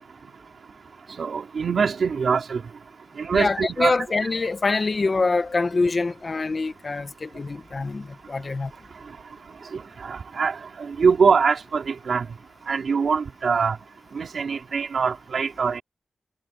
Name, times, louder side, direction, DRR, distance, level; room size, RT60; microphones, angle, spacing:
voice 1, 1.2-2.6 3.2-3.9 9.7-12.3 12.7-13.8 14.1-15.8, right 5 dB, 65° right, 4.3 m, -23 dB
voice 2, 3.3-8.7, left 3 dB, 35° left, 1.4 m, -25 dB
wide cardioid pair, 155°, 0 cm